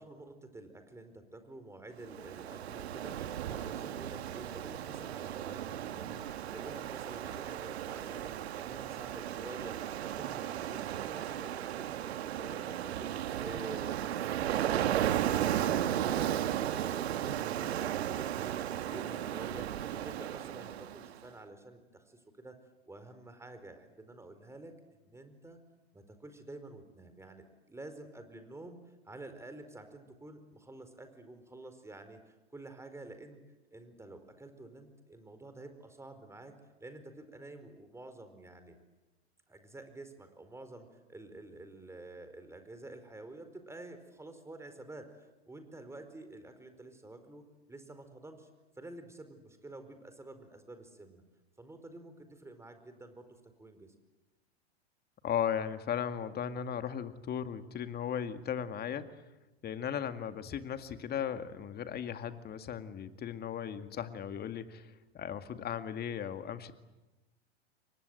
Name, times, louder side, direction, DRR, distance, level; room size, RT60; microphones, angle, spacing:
voice 1, 0.0-18.5 18.9-22.6 22.9-24.7 25.0-25.6 25.9-33.4 33.7-36.5 36.8-38.8 39.5-48.5 48.8-51.2 51.6-53.3 53.6-53.9, right 2 dB, 10° right, 8 dB, 4.6 m, -49 dB
Ocean, 2.0-21.2, right 11 dB, 70° right, 1.6 m, -35 dB
voice 2, 55.2-59.1 59.6-66.7, left 8 dB, 30° left, 9 dB, 2.1 m, -36 dB
29.0 x 24.0 x 8.0 m, 1.1 s
hypercardioid pair, 100°, 33 cm